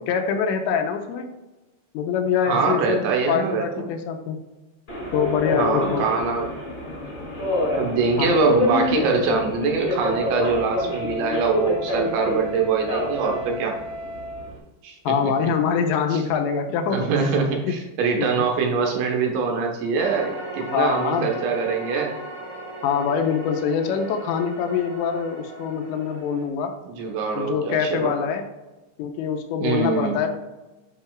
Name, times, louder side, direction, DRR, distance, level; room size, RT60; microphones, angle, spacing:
voice 1, 0.1-1.3 1.9-4.4 5.1-6.0 8.2-8.3 15.1-17.1 17.7-17.8 18.2-18.3 20.7-21.3 22.8-26.7 27.3-28.4 29.0-30.4, left 7 dB, 90° left, 5 dB, 2.9 m, -24 dB
voice 2, 2.5-3.8 5.6-6.5 7.8-13.8 14.8-15.1 16.1-16.2 16.9-22.2 26.9-28.1 29.6-30.2, right 5 dB, 80° right, 1 dB, 3.5 m, -23 dB
Subway metro underground, 4.9-14.6, left 2 dB, 25° left, 1.3 m, -27 dB
Wind instrument woodwind instrument, 9.9-14.5, right 2 dB, 60° right, 3.4 m, -35 dB
sound 1, 20.0-26.5, right 2 dB, 35° right, 1.7 m, -37 dB
11.0 x 5.6 x 2.4 m, 1.1 s
omnidirectional pair, 5.2 m